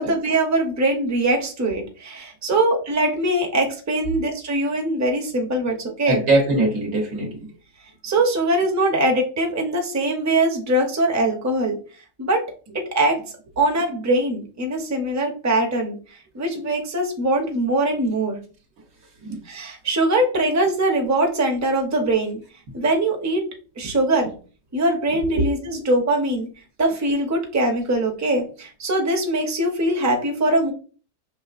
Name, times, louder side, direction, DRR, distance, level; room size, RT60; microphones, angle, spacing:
voice 1, 0.0-6.2 8.0-11.8 12.2-12.4 12.9-13.2 13.6-16.0 16.3-18.4 19.5-22.4 22.7-23.4 23.8-24.3 24.7-26.5 26.8-30.7, right 1 dB, 20° right, 2 dB, 0.5 m, -22 dB
voice 2, 6.1-7.4 19.2-19.4 25.1-25.5, right 2 dB, 80° right, 0 dB, 1.2 m, -22 dB
4.9 x 3.1 x 2.4 m, 0.38 s
omnidirectional pair, 1.4 m